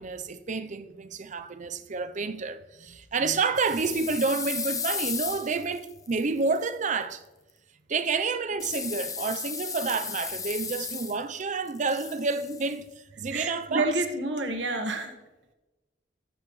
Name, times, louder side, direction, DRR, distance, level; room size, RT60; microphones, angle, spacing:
voice 1, 0.0-7.2 7.9-12.9 13.2-13.9, right 4 dB, 45° right, 0.6 m, -29 dB
sound 1, 3.6-6.6 8.6-11.4 11.7-12.7, left 5 dB, 20° left, 0.7 m, -35 dB
voice 2, 13.3-15.1, right 2 dB, 90° right, 1.3 m, -29 dB
18.5 x 7.9 x 3.1 m
head